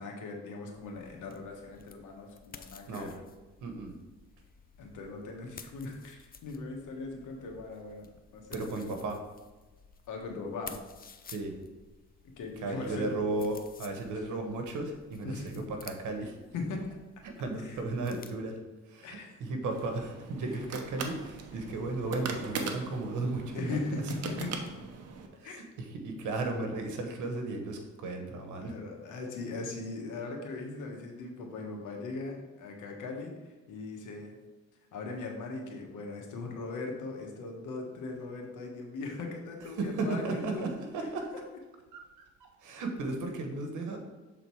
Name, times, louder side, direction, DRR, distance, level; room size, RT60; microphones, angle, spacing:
voice 1, 0.0-3.1 4.8-8.7 10.1-10.8 12.4-13.4 14.1-14.2 15.2-15.5 16.5-16.8 17.6-17.8 19.0-19.4 21.5-21.6 23.5-24.5 25.4-25.6 28.6-34.4 34.9-40.6 41.0-41.1, left 3 dB, 85° left, 2 dB, 1.4 m, -39 dB
sound 1, 0.7-18.3, left 5 dB, 30° left, 0.6 m, -53 dB
voice 2, 3.6-3.9 8.5-9.2 11.3-11.5 12.6-16.4 17.2-18.6 18.9-23.8 25.3-28.8 39.8-41.3 41.9-42.0 42.6-44.0, right 2 dB, 80° right, 4 dB, 1.2 m, -35 dB
sound 2, 19.7-25.3, right 4 dB, 55° right, 0.9 m, -40 dB
7.1 x 3.9 x 4.6 m, 1.2 s
cardioid pair, 90°, 30 cm